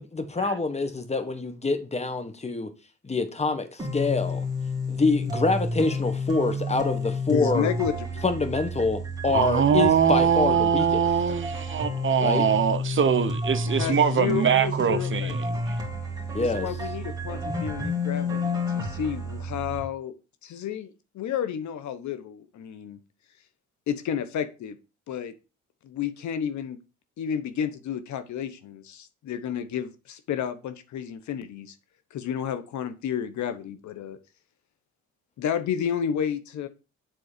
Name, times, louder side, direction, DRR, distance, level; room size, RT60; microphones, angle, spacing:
voice 1, 0.0-2.7 3.0-4.4 4.9-7.7 8.2-11.0 12.2-12.4 16.3-16.7, left 3 dB, 20° left, 1.3 m, -26 dB
sound 1, 3.8-19.8, left 2 dB, 10° right, 2.3 m, -30 dB
voice 2, 7.3-8.2 13.7-15.3 16.4-20.1 20.4-23.0 23.9-24.8 25.1-25.3 25.8-26.8 27.2-31.7 32.1-34.2 35.4-36.7, left 8 dB, 70° left, 0.9 m, -31 dB
voice 3, 9.3-15.8, right 8 dB, 40° right, 0.7 m, -23 dB
7.6 x 3.9 x 5.0 m
cardioid pair, 90°, 30 cm